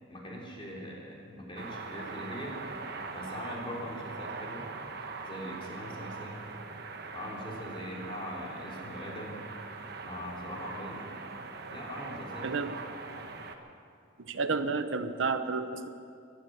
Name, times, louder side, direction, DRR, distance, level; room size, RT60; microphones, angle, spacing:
voice 1, 0.1-2.6 3.1-4.7 5.2-6.5 7.1-9.5 10.0-11.1 11.7-12.7, equal, 25° left, -3 dB, 3.4 m, -41 dB
sound 1, 1.6-13.6, right 4 dB, 55° right, 1.1 m, -42 dB
voice 2, 12.4-12.8 14.2-15.9, right 4 dB, 85° right, 10 dB, 0.8 m, -31 dB
15.0 x 11.5 x 7.9 m, 2.4 s
head